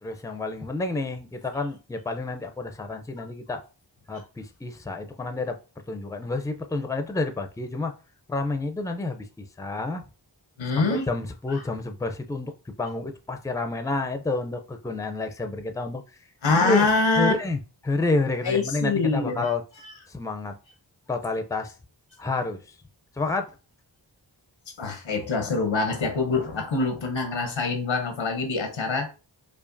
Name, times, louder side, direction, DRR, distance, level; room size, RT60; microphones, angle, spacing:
voice 1, 0.0-3.6 4.1-5.6 5.9-7.9 8.3-10.0 10.8-12.5 12.8-16.0 16.5-16.9 17.2-19.6 20.1-20.5 21.1-21.7 22.2-22.6 23.2-23.5, left 2 dB, 10° left, 0.5 m, -29 dB
voice 2, 10.6-11.1 11.5-11.6 16.4-17.3 18.4-19.5 24.8-29.1, left 3 dB, 90° left, 0.9 m, -24 dB
4.8 x 2.4 x 2.6 m
cardioid pair, 40°, 45 cm